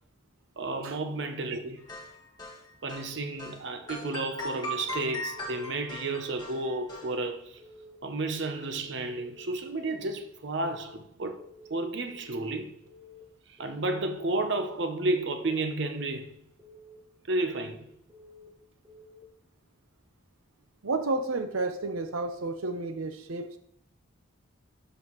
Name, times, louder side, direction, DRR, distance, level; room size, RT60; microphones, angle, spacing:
voice 1, 0.6-1.8 2.8-7.6 8.0-11.4 11.7-12.8 13.5-16.4 17.3-17.9, right 2 dB, 55° right, 0.7 m, -32 dB
sound 1, 1.9-3.1 3.4-3.6 3.9-7.1, equal, 20° left, 1.6 m, -38 dB
Keyboard (musical) / Alarm, 3.1-3.4 3.8-4.2 4.6-4.9 5.3-5.7 6.1-6.5 6.8-7.2 7.6-8.0 8.3-8.7 9.1-9.5 9.8-10.2 10.6-11.0 11.3-11.7 12.1-12.5 12.8-13.2 13.6-14.0 14.3-14.7 15.1-15.5 15.8-16.2 16.6-17.0 17.3-17.7 18.1-18.5 18.8-19.2, left 2 dB, 15° right, 2.4 m, -52 dB
voice 2, 20.8-23.6, right 3 dB, 90° right, 0.8 m, -31 dB
12.0 x 5.5 x 3.1 m
head